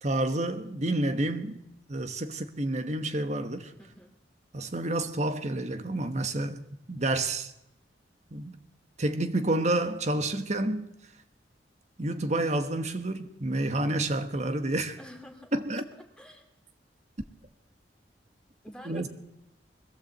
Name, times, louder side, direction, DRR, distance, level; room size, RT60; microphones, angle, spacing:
voice 1, 0.0-1.6 1.9-3.7 4.5-6.6 6.9-7.5 8.3-8.6 9.0-10.9 12.0-15.0 15.5-15.8 18.8-19.1, right 1 dB, 40° right, 1.3 m, -29 dB
voice 2, 3.8-4.1 15.0-15.5 16.2-16.5 18.6-19.1, equal, 5° left, 2.3 m, -47 dB
21.5 x 16.0 x 8.0 m
head